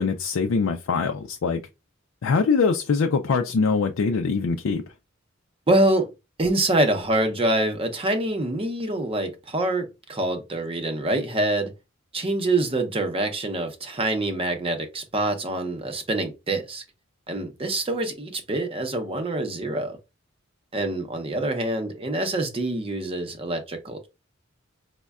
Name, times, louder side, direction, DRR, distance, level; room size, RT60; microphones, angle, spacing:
voice 1, 0.0-1.6 2.2-4.8, left 5 dB, 75° left, 0.4 m, -23 dB
voice 2, 5.7-6.1 6.4-11.7 12.1-16.8 17.3-20.0 20.7-24.1, right 2 dB, 30° right, 0.7 m, -25 dB
5.2 x 2.1 x 2.3 m
head